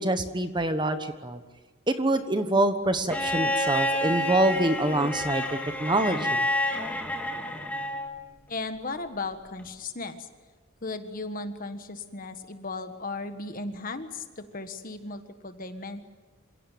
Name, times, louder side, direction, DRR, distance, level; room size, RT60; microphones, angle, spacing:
voice 1, 0.0-1.4 1.9-6.4, right 1 dB, 20° right, 9 dB, 1.2 m, -26 dB
Bowed string instrument, 3.1-8.1 9.6-9.7, left 1 dB, 5° left, 2.0 m, -29 dB
voice 2, 8.5-10.3 10.8-16.0, left 3 dB, 40° left, 8 dB, 1.5 m, -36 dB
27.0 x 17.0 x 9.3 m, 1.3 s
head